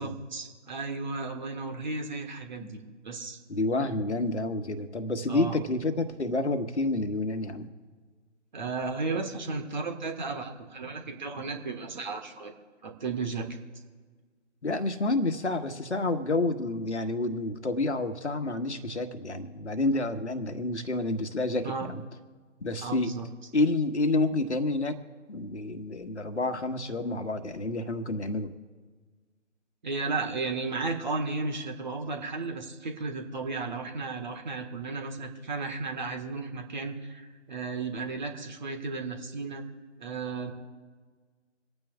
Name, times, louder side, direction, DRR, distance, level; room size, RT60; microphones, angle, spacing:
voice 1, 0.0-3.4 5.3-5.6 8.5-12.5 12.8-13.5 21.6-21.9 22.8-23.3 29.8-39.6 40.0-40.5, right 4 dB, 40° right, 4 dB, 1.6 m, -34 dB
voice 2, 3.5-7.7 14.6-22.0 22.6-23.1 23.5-25.0 25.3-28.5, left 2 dB, 65° left, 7 dB, 1.5 m, -29 dB
27.5 x 9.3 x 2.4 m, 1.5 s
figure-of-eight pair, 150°, 37 cm